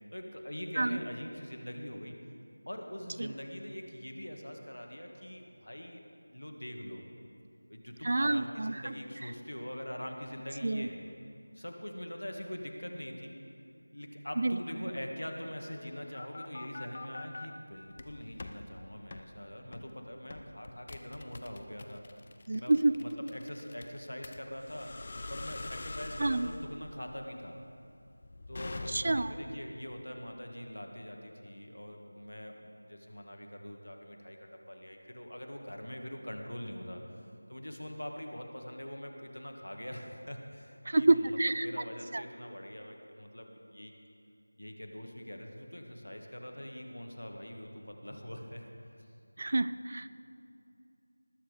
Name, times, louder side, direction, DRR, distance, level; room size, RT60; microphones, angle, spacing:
voice 1, 0.1-2.2 2.7-6.0 6.3-7.0 7.7-11.0 11.5-13.3 13.9-22.0 22.5-22.7 23.0-24.9 25.3-27.5 28.5-43.9 44.6-48.7 49.0-49.1, equal, 75° left, 3 dB, 1.7 m, -43 dB
voice 2, 8.0-8.9 10.6-10.9 14.4-14.6 22.5-22.9 26.2-26.5 28.9-29.3 40.9-41.7 42.1-42.2 49.4-50.1, right 2 dB, 40° right, 14 dB, 0.3 m, -28 dB
sound 1, 15.7-17.5 17.9-18.6 19.1-19.3 19.7-19.9 20.3-29.4, left 2 dB, 30° left, 0.6 m, -44 dB
19.5 x 6.8 x 5.1 m, 2.6 s
figure-of-eight pair, 170°, 0 cm